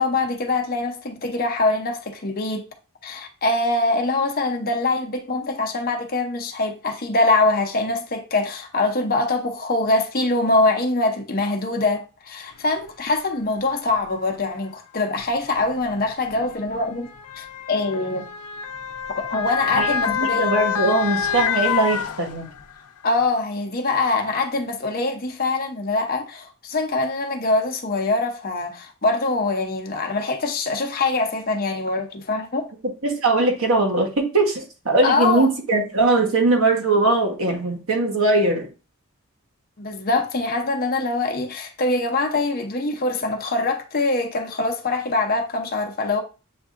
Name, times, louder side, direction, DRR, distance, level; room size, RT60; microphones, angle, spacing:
voice 1, 0.0-2.7 3.0-17.1 17.4-18.3 19.3-20.5 23.0-32.6 35.0-35.5 39.8-46.2, left 2 dB, 40° left, 0.7 m, -23 dB
Motor vehicle (road) / Siren, 12.8-12.9 13.9-14.1 15.2-22.8 23.2-23.3, left 7 dB, 85° left, 0.5 m, -27 dB
voice 2, 19.8-22.5 32.8-38.7, right 2 dB, 65° right, 1.2 m, -20 dB
7.8 x 2.7 x 2.5 m
head